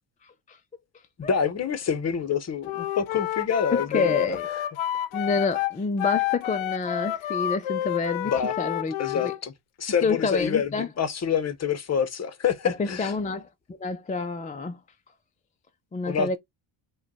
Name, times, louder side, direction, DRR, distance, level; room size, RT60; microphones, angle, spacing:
voice 1, 1.2-4.6 8.3-8.5 9.0-9.5 9.8-13.1 16.1-16.4, left 7 dB, 35° left, 0.7 m, -27 dB
Wind instrument woodwind instrument, 2.6-9.4, left 13 dB, 85° left, 0.6 m, -29 dB
voice 2, 3.7-4.5 5.1-8.3 8.6-8.9 9.2-9.3 10.0-10.9 12.8-14.8 15.9-16.4, left 4 dB, 20° left, 0.4 m, -28 dB
5.0 x 2.3 x 4.1 m
cardioid pair, 125°, 47 cm